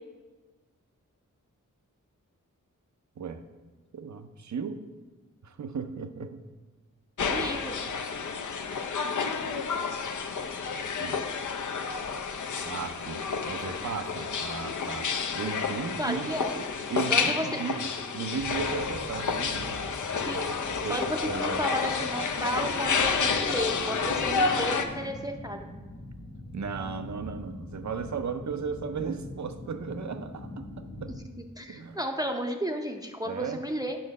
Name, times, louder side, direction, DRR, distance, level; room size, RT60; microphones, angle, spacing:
voice 1, 3.9-4.8 5.4-6.4 11.0-11.3 12.6-19.8 20.2-21.6 26.5-31.2 31.7-32.0 33.3-33.6, right 5 dB, 60° right, 9 dB, 0.6 m, -36 dB
sound 1, 7.2-24.9, left 5 dB, 65° left, 0.6 m, -30 dB
voice 2, 7.2-7.8 16.0-16.5 17.1-17.6 20.3-20.5 20.9-25.7 31.6-34.0, equal, 10° right, 3 dB, 0.6 m, -33 dB
sound 2, 18.4-31.2, left 1 dB, 85° left, 1.4 m, -43 dB
8.6 x 3.9 x 6.5 m, 1.3 s
wide cardioid pair, 65°, 32 cm